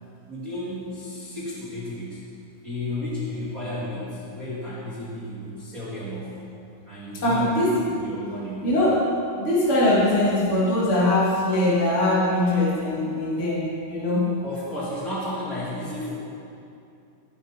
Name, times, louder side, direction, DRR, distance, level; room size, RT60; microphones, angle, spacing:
voice 1, 0.3-2.2 2.6-6.3 6.8-7.5 8.0-8.7 14.4-16.1, left 1 dB, 35° right, -8 dB, 1.3 m, -33 dB
voice 2, 7.2-7.9 8.6-9.0 9.4-14.2, left 1 dB, 30° left, -7 dB, 1.3 m, -22 dB
18.5 x 11.5 x 4.3 m, 2.6 s
omnidirectional pair, 5.7 m